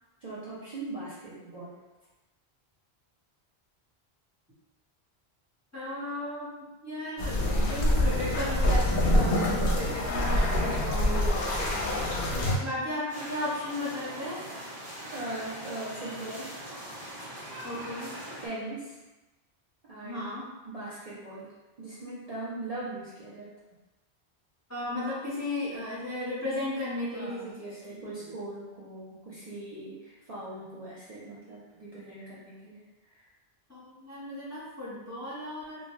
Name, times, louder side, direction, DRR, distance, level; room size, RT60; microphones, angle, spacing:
voice 1, 0.2-1.7 12.3-12.6 15.1-16.5 18.4-19.0 19.8-20.2 20.6-21.5 21.8-23.5 27.1-33.2, right 2 dB, 45° right, -9 dB, 0.5 m, -40 dB
voice 2, 5.7-11.9 12.6-14.4 17.6-18.1 20.0-20.4 24.7-27.8 33.7-35.8, left 1 dB, 15° left, -10 dB, 0.8 m, -35 dB
sound 1, 7.2-12.6, left 1 dB, 60° left, 0.7 m, -25 dB
sound 2, 13.1-18.5, equal, 90° right, 1.3 m, -41 dB
2.6 x 2.2 x 2.9 m, 1.1 s
omnidirectional pair, 1.1 m